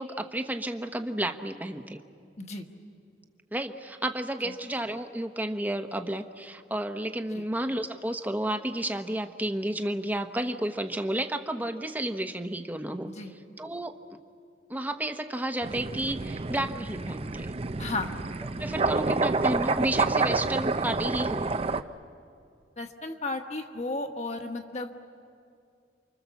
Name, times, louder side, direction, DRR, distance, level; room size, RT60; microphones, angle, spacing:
voice 1, 0.0-2.0 3.5-13.1 13.6-14.0 14.7-17.5 18.6-21.5, right 1 dB, 10° right, 7 dB, 1.0 m, -31 dB
voice 2, 2.4-2.7 7.3-7.4 13.0-13.3 17.8-18.1 22.8-24.9, left 2 dB, 40° left, 4 dB, 1.6 m, -34 dB
sound 1, 15.6-21.8, right 3 dB, 35° right, 0.6 m, -28 dB
29.5 x 25.0 x 7.2 m, 2.4 s
head